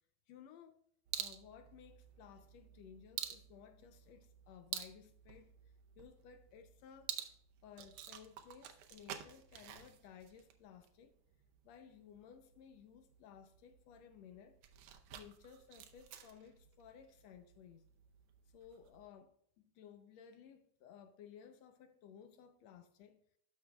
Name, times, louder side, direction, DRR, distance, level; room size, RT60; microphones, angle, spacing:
voice 1, 0.3-0.8 1.2-5.5 6.0-7.3 7.6-11.1 11.6-14.6 15.1-17.8 18.5-23.2, left 8 dB, 75° left, 1.6 m, -58 dB
sound 1, 1.0-19.1, right 10 dB, 80° right, 1.3 m, -50 dB
13.0 x 6.0 x 2.3 m
omnidirectional pair, 3.5 m